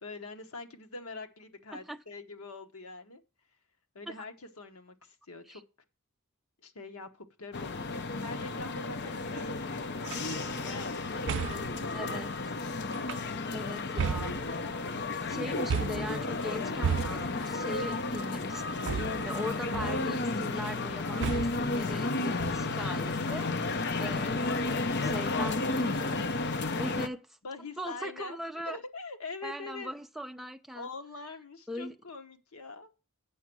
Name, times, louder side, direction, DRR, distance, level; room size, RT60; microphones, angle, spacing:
voice 1, 0.0-3.2 3.9-5.6 6.6-12.1 25.0-25.5 27.4-28.4 28.7-29.9 30.7-32.9, left 3 dB, 85° left, 1.1 m, -44 dB
sound 1, 7.5-27.1, left 3 dB, 50° left, 0.7 m, -32 dB
sound 2, 10.0-10.4 11.3-11.8 12.9-13.5 14.0-14.9 15.7-16.2 16.8-17.5 18.9-19.4 19.7-20.2 21.2-21.7 22.4-22.9, right 7 dB, 55° right, 0.4 m, -33 dB
voice 2, 11.9-12.3 13.5-14.6 15.3-23.5 24.0-26.2 26.8-27.4 27.8-28.8 29.4-30.9 31.7-31.9, equal, ahead, 0.5 m, -40 dB
8.3 x 6.2 x 6.1 m
head